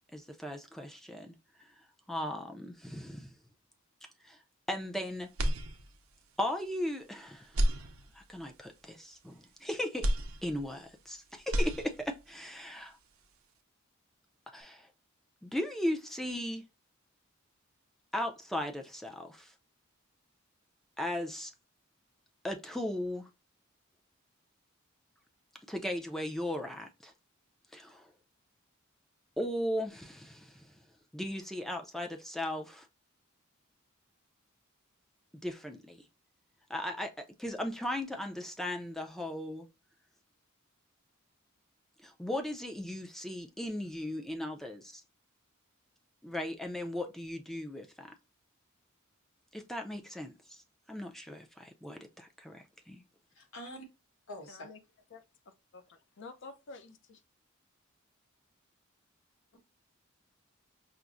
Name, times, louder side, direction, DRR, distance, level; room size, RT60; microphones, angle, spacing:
voice 1, 0.1-1.4 2.1-3.3 4.2-4.4 4.7-5.3 6.4-7.6 8.1-10.1 10.4-13.0 14.5-14.9 15.4-16.6 18.1-19.5 21.0-21.5 22.4-23.3 25.7-27.1 27.7-28.1 29.4-30.7 31.1-32.9 35.4-36.0 36.7-39.7 42.0-45.0 46.2-48.1 49.5-50.6 50.9-53.0, left 1 dB, ahead, 0.4 m, -37 dB
sound 1, 5.3-6.3 6.7-6.8 7.4-8.5 10.0-11.1 11.4-12.3, equal, 75° right, 0.5 m, -32 dB
voice 2, 53.3-53.9 54.3-54.7, equal, 85° left, 1.2 m, -45 dB
voice 3, 54.5-54.8 55.1-57.2, left 3 dB, 60° left, 0.5 m, -50 dB
5.6 x 2.0 x 2.5 m
head